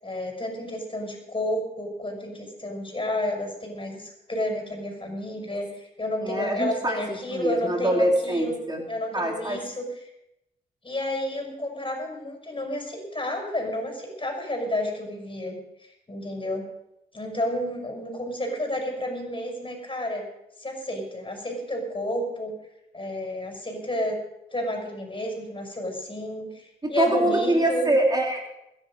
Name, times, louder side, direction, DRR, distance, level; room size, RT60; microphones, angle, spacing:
voice 1, 0.0-9.9 10.8-16.7 17.1-20.2 20.6-22.6 22.9-24.2 24.5-27.9, left 1 dB, 30° left, 2 dB, 6.5 m, -31 dB
voice 2, 6.2-8.8 9.1-9.6 26.8-28.4, right 1 dB, 20° right, 1 dB, 3.1 m, -24 dB
21.5 x 10.5 x 5.3 m, 0.86 s
supercardioid pair, 50°, 18 cm